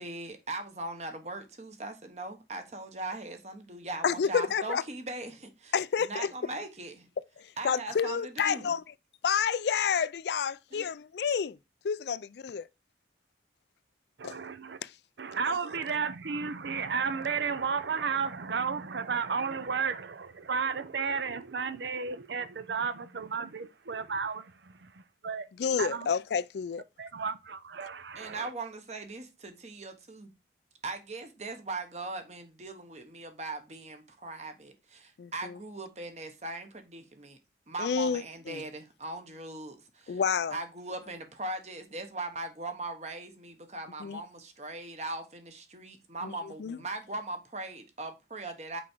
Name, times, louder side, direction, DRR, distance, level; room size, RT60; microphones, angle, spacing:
voice 1, 0.0-5.7 6.0-7.1 7.6-8.7 10.7-10.9 28.1-30.3 30.8-37.4 37.7-40.2 40.5-48.8, right 2 dB, 40° right, 1.1 m, -40 dB
voice 2, 4.0-4.8 5.7-6.3 7.4-8.8 9.2-11.6 11.8-12.7 14.2-14.4 14.8-14.9 15.5-15.6 25.6-26.8 35.2-35.6 37.8-38.6 40.1-40.6 44.0-44.2 46.2-46.3 46.6-46.8, left 6 dB, 65° left, 0.4 m, -29 dB
voice 3, 14.2-14.8 15.2-25.4 25.8-26.1 27.0-28.5, right 5 dB, 75° right, 0.6 m, -33 dB
6.1 x 4.8 x 4.4 m
head